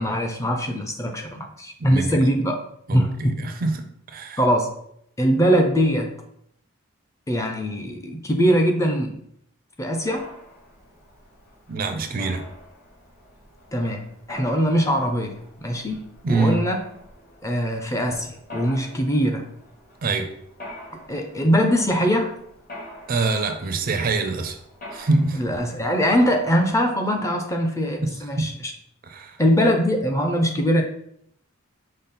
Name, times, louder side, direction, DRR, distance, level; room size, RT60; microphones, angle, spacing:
voice 1, 0.0-2.6 2.9-3.4 4.4-4.7 5.2-6.1 7.3-9.2 9.8-10.3 13.7-16.9 17.4-19.5 21.1-22.3 25.3-28.7 29.4-30.8, equal, 15° left, 3 dB, 0.4 m, -22 dB
voice 2, 1.8-2.2 2.9-3.7 4.1-4.4 11.7-12.4 16.2-16.6 20.0-20.3 23.1-24.6 24.9-25.4 28.0-28.1 28.4-28.5 29.1-29.3, right 3 dB, 45° right, 7 dB, 0.4 m, -24 dB
Mechanisms, 10.1-26.8, left 1 dB, 45° left, 1.0 m, -45 dB
5.2 x 2.1 x 4.1 m, 0.70 s
head